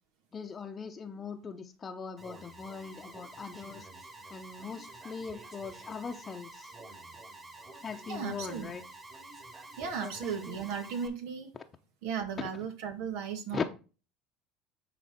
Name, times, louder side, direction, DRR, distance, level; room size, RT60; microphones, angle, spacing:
voice 1, 0.3-3.9 4.3-6.7 7.8-8.8 10.0-10.6 12.4-12.5 13.5-13.6, left 5 dB, 30° left, 4 dB, 0.8 m, -40 dB
Alarm, 2.2-11.1, right 2 dB, 30° right, 2.5 m, -49 dB
voice 2, 8.1-8.7 9.8-11.5 12.0-13.6, right 7 dB, 80° right, 6 dB, 1.7 m, -36 dB
10.0 x 4.2 x 4.2 m, 0.33 s
supercardioid pair, 100°, 0 cm